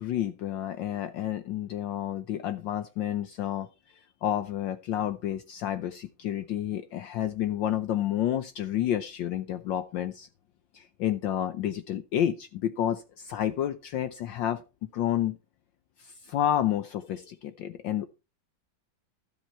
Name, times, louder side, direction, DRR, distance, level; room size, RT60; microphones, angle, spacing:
voice 1, 0.0-3.7 3.9-10.3 10.7-15.4 16.0-18.1, left 11 dB, 70° left, 11 dB, 1.3 m, -30 dB
12.5 x 7.3 x 4.4 m, 0.29 s
omnidirectional pair, 2.3 m